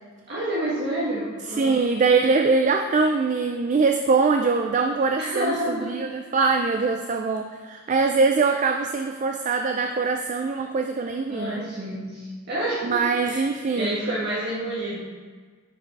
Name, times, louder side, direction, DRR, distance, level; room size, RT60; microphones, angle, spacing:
voice 1, 0.3-2.1 5.1-5.9 11.3-15.0, right 1 dB, 55° right, -8 dB, 1.6 m, -29 dB
voice 2, 1.6-11.6 12.8-14.0, right 4 dB, 40° right, 5 dB, 0.4 m, -23 dB
9.3 x 5.2 x 4.7 m, 1.5 s
head